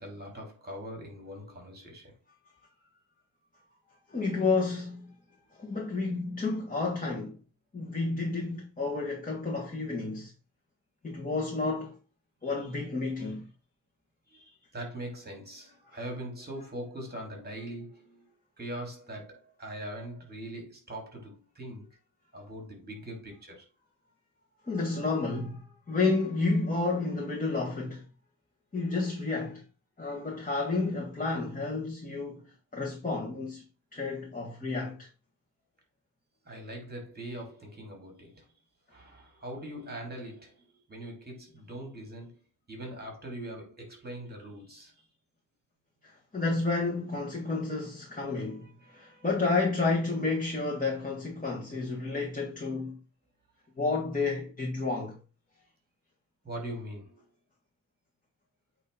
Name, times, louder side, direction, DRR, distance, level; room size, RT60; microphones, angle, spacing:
voice 1, 0.0-2.1 12.4-12.7 13.2-13.3 14.3-18.3 18.6-21.9 22.3-23.7 36.5-38.4 38.9-42.3 42.7-45.1 48.5-49.3 56.4-57.2, right 1 dB, 30° right, 3.4 m, -42 dB
voice 2, 4.1-5.1 5.6-7.4 7.7-10.3 11.0-11.9 12.4-13.5 24.7-28.0 28.7-29.6 30.0-32.4 32.7-33.6 33.9-35.1 46.0-53.0 53.8-55.2, left 3 dB, 25° left, 1.6 m, -31 dB
8.4 x 3.2 x 5.5 m
wide cardioid pair, 125°, 34 cm